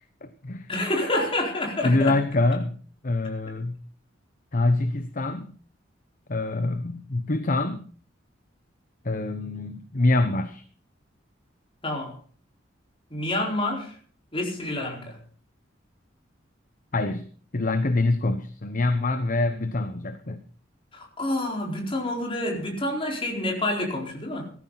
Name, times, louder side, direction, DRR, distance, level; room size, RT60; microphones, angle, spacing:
voice 1, 0.0-0.7 1.8-3.8 4.5-5.6 6.3-7.9 9.0-10.6 16.9-17.3 17.5-20.4, left 2 dB, 45° left, 1.0 m, -25 dB
voice 2, 0.7-2.2 11.8-12.2 13.1-14.0 14.3-15.2 20.9-24.5, left 1 dB, 30° left, 4.5 m, -28 dB
16.5 x 14.0 x 4.1 m
head